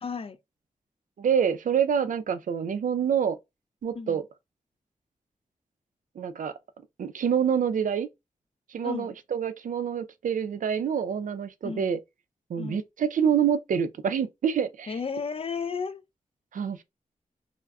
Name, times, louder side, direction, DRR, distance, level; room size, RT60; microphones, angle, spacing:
voice 1, 0.0-0.4 4.0-4.2 8.8-9.1 11.6-11.9 12.6-12.8 14.9-16.0, left 5 dB, 45° left, 0.4 m, -33 dB
voice 2, 1.2-3.4 3.8-4.2 6.2-6.5 7.0-8.1 8.7-12.0 12.5-15.0 16.5-16.8, right 7 dB, 70° right, 0.4 m, -26 dB
3.4 x 2.1 x 2.3 m
wide cardioid pair, 95°, 14 cm